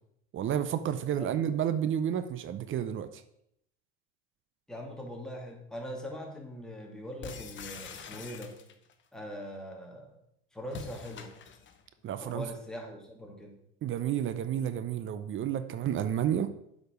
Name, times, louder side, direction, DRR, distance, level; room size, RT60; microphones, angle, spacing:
voice 1, 0.3-3.2 12.0-12.4 13.8-16.5, right 9 dB, 35° right, 11 dB, 0.6 m, -31 dB
voice 2, 1.1-1.4 4.7-8.6 9.1-10.2 10.5-11.3 12.2-13.6, equal, ahead, 0 dB, 2.1 m, -42 dB
sound 1, 7.2-8.9 10.7-11.8, left 6 dB, 30° left, 1.0 m, -45 dB
7.9 x 5.1 x 5.1 m, 0.76 s
hypercardioid pair, 90°, 36 cm